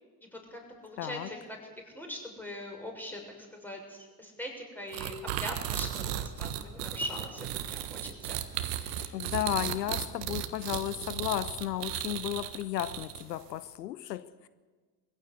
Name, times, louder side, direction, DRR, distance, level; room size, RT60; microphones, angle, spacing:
voice 1, 0.2-1.6 1.8-3.2 3.5-8.4 8.8-9.1, equal, 5° left, 6.8 m, -41 dB
voice 2, 1.0-1.3 9.1-14.5, left 13 dB, 80° left, 0.7 m, -34 dB
sound 1, 4.9-13.4, right 11 dB, 70° right, 1.6 m, -35 dB
22.5 x 15.5 x 8.3 m
figure-of-eight pair, 60°, 49 cm